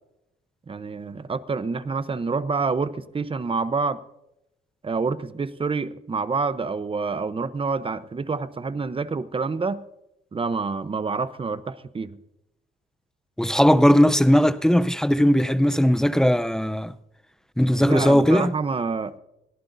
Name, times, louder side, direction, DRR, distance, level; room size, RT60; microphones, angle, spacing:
voice 1, 0.7-4.0 4.8-9.8 10.3-12.2 17.7-19.2, right 4 dB, 25° right, 0.8 m, -27 dB
voice 2, 13.4-16.9 17.6-18.5, equal, 5° left, 0.6 m, -18 dB
23.0 x 17.0 x 2.7 m
cardioid pair, 90°, 20 cm